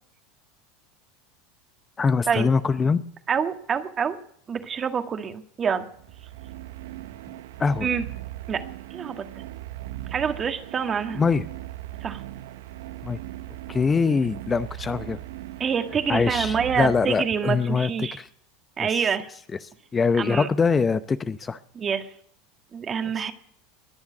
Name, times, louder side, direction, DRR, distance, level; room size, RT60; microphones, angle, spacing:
voice 1, 2.0-3.0 7.6-7.9 11.2-11.5 13.0-13.2 13.7-15.2 16.1-18.3 18.8-19.1 19.9-21.6 23.2-23.3, left 5 dB, 25° left, 12 dB, 0.7 m, -23 dB
voice 2, 3.3-4.2 4.5-5.8 7.8-8.0 8.5-8.6 8.9-9.2 10.1-11.2 12.0-12.2 15.6-18.2 18.8-19.3 20.2-20.5 21.7-22.1 22.7-23.3, right 7 dB, 30° right, 7 dB, 1.7 m, -26 dB
sound 1, 5.9-17.7, right 15 dB, 75° right, 0.8 m, -39 dB
21.0 x 7.2 x 9.5 m, 0.66 s
hypercardioid pair, 90°, 0 cm